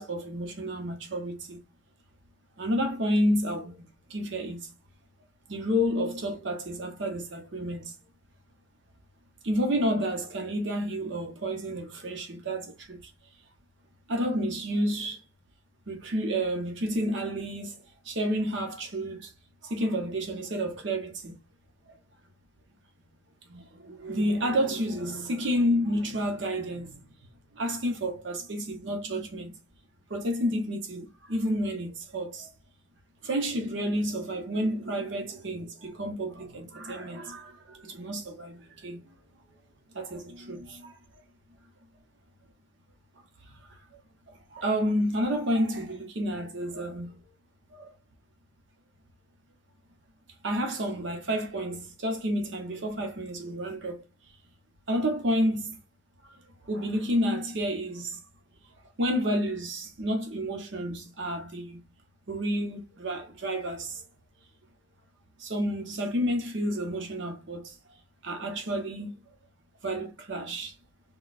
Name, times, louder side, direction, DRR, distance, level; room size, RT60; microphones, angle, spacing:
voice 1, 0.0-1.6 2.6-4.7 5.5-7.9 9.4-13.1 14.1-15.2 15.9-19.3 19.6-21.3 21.9-22.0 23.5-27.0 27.5-29.5 30.1-32.5 33.2-39.0 39.9-41.0 43.4-43.6 44.3-47.2 47.7-47.9 50.4-54.0 54.9-55.7 56.2-56.3 56.7-58.2 59.0-61.8 62.3-64.0 65.4-67.7 68.2-69.2 69.8-70.7, equal, 65° right, 0.8 m, -30 dB
4.0 x 2.3 x 2.4 m
head